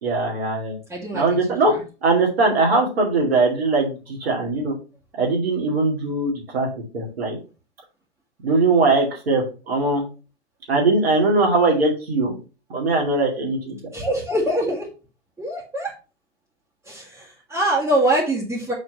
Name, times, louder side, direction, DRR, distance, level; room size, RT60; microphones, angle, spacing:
voice 1, 0.0-0.8 1.1-1.7 2.0-4.7 5.2-6.7 6.9-7.4 8.4-10.1 10.7-12.3 12.7-13.8, right 3 dB, 60° right, -2 dB, 2.3 m, -20 dB
voice 2, 0.9-1.4 13.9-14.9 15.4-15.9 16.9-18.7, right 1 dB, 10° right, -8 dB, 2.1 m, -23 dB
6.3 x 3.8 x 5.5 m, 0.33 s
figure-of-eight pair, 105°, 34 cm